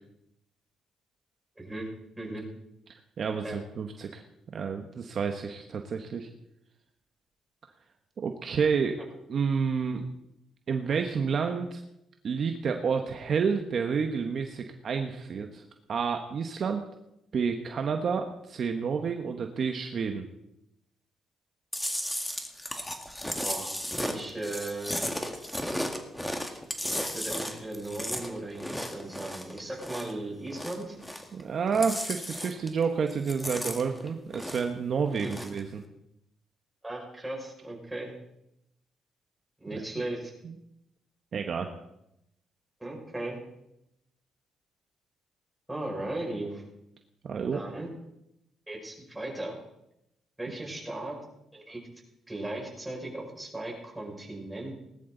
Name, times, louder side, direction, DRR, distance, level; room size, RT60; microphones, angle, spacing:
voice 1, 1.6-1.9 2.2-2.5 3.4-3.6 23.3-25.0 27.1-31.0 35.2-35.3 36.8-38.1 39.6-40.3 42.8-43.4 45.7-46.6 47.5-47.9 48.7-49.6 50.4-51.2 51.5-51.8 52.3-54.8, right 2 dB, 10° right, -1 dB, 5.8 m, -37 dB
voice 2, 3.2-4.2 4.5-6.3 8.2-9.0 9.3-10.0 10.7-11.8 12.2-15.6 15.9-16.8 17.3-20.3 31.3-35.8 39.7-39.8 40.4-40.5 41.3-41.7 47.2-47.6, right 6 dB, 55° right, 5 dB, 1.2 m, -29 dB
Chewing mastication, 21.7-30.2 30.5-31.4 31.7-32.8 33.1-34.8 35.1-35.6, equal, 5° left, 1.8 m, -35 dB
19.0 x 12.5 x 4.0 m, 0.83 s
cardioid pair, 90°, 0 cm